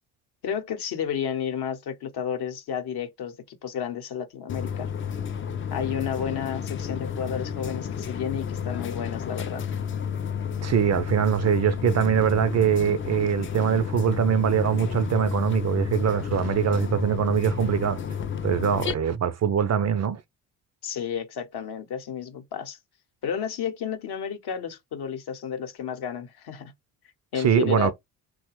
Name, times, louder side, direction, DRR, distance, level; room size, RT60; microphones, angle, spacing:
voice 1, 0.4-4.9 5.7-9.7 20.8-22.8 23.2-26.7 27.3-27.9, left 8 dB, 60° left, 0.9 m, -32 dB
sound 1, 4.5-18.9, left 7 dB, 30° left, 0.4 m, -31 dB
voice 2, 10.6-18.0 18.4-20.2 27.3-27.9, right 8 dB, 35° right, 0.4 m, -23 dB
2.9 x 2.2 x 2.9 m
hypercardioid pair, 50°, 45 cm